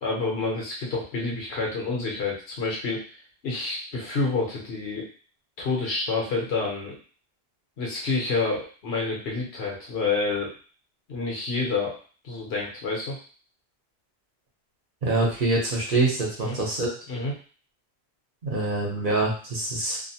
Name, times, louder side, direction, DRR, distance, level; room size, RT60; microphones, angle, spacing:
voice 1, 0.0-3.0 3.4-5.0 5.6-6.9 7.8-10.5 11.1-12.0 12.2-13.2 16.4-16.6 17.1-17.3, left 3 dB, 75° left, -2 dB, 1.1 m, -28 dB
voice 2, 15.0-16.9 18.4-20.0, right 2 dB, 55° right, -3 dB, 1.0 m, -25 dB
2.7 x 2.0 x 2.7 m, 0.40 s
omnidirectional pair, 1.1 m